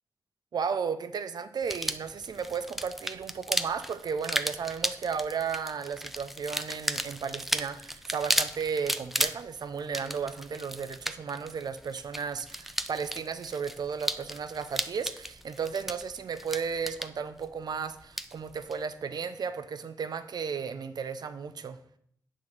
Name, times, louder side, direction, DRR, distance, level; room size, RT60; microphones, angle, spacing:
voice 1, 0.5-21.8, right 6 dB, 85° right, 10 dB, 0.5 m, -34 dB
sound 1, 1.6-18.8, equal, 5° right, 0.4 m, -35 dB
8.5 x 3.6 x 6.4 m, 0.68 s
wide cardioid pair, 95°, 7 cm